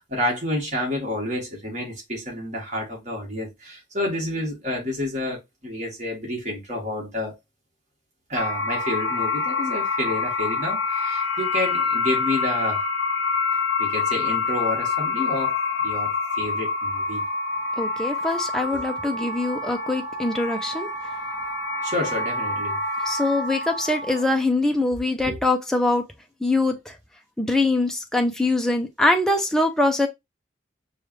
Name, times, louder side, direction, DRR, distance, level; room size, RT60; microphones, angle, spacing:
voice 1, 0.0-7.3 8.3-12.9 13.8-17.2 21.8-22.8 25.3-25.4, left 1 dB, 40° right, 1.7 m, -29 dB
sound 1, 8.3-24.3, left 3 dB, 75° left, 0.6 m, -27 dB
voice 2, 17.8-20.9 23.1-26.0 26.4-27.0 27.4-30.1, left 2 dB, 5° left, 0.5 m, -23 dB
4.9 x 2.3 x 3.1 m
head